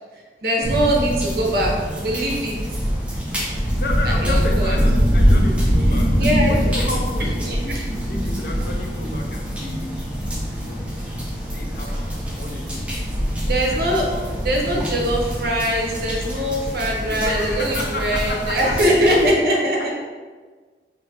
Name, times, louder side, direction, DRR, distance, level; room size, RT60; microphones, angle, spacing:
voice 1, 0.4-2.5 4.0-5.2 6.1-6.6 7.4-8.0 13.5-14.1 14.4-19.9, equal, 55° right, -2 dB, 0.6 m, -22 dB
sound 1, 0.6-19.3, equal, 5° right, 0.4 m, -23 dB
voice 2, 3.6-10.0 10.5-10.9 11.2-14.3 14.6-15.2 17.0-18.9, left 2 dB, 55° left, 2 dB, 0.4 m, -33 dB
3.4 x 2.6 x 2.6 m, 1.4 s
head